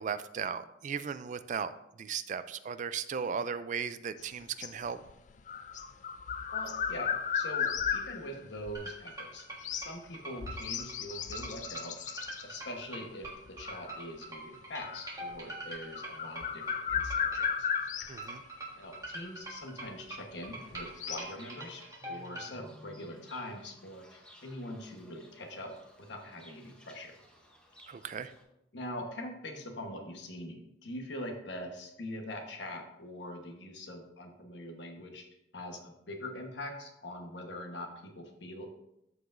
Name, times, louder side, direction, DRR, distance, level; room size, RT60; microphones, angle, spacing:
voice 1, 0.0-1.7 2.0-5.0 18.1-18.4 27.9-28.3, right 6 dB, 40° right, 12 dB, 0.3 m, -36 dB
sound 1, 4.2-8.7 9.6-10.0 10.4-12.4 13.2-14.2 14.8-15.4 15.7-18.2 19.0-19.1 20.5-21.3, left 7 dB, 40° left, 0.4 m, -35 dB
voice 2, 6.5-12.0 12.4-17.7 18.0-18.2 18.7-27.2 28.7-35.2 35.5-38.7, left 1 dB, 65° left, 3 dB, 1.1 m, -43 dB
Pizz Loop, 8.7-22.5, right 2 dB, 15° right, 1.5 m, -43 dB
Fowl / Bird, 20.6-28.4, left 1 dB, 5° left, 0.8 m, -57 dB
13.0 x 4.8 x 2.5 m, 0.84 s
head